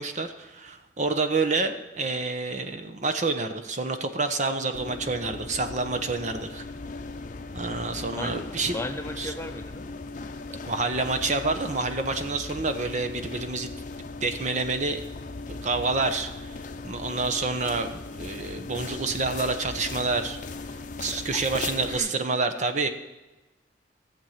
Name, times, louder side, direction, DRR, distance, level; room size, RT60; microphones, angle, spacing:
voice 1, 0.0-6.6 7.5-8.7 9.2-9.3 10.7-13.7 14.2-15.0 15.6-16.6 16.8-20.4 21.0-22.9, right 3 dB, 45° right, 8 dB, 0.9 m, -28 dB
sound 1, 4.7-22.0, left 3 dB, 50° left, 0.7 m, -38 dB
voice 2, 8.0-8.4 8.7-9.8 10.2-10.6 21.1-22.4, left 1 dB, 15° left, 6 dB, 0.7 m, -37 dB
14.0 x 7.7 x 5.8 m, 1.1 s
head